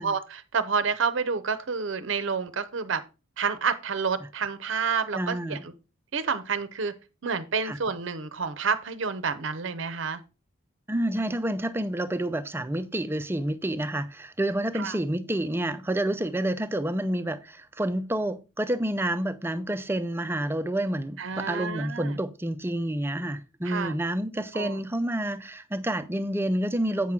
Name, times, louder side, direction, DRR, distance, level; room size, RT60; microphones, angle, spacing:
voice 1, 0.0-3.0 3.4-5.7 6.1-6.9 7.2-10.2 14.7-15.0 21.2-22.2 23.6-23.9 24.5-24.8, right 5 dB, 60° right, 0.6 m, -29 dB
voice 2, 5.1-5.6 7.6-7.8 10.9-27.1, right 1 dB, 10° right, 0.4 m, -29 dB
8.4 x 5.9 x 3.6 m
head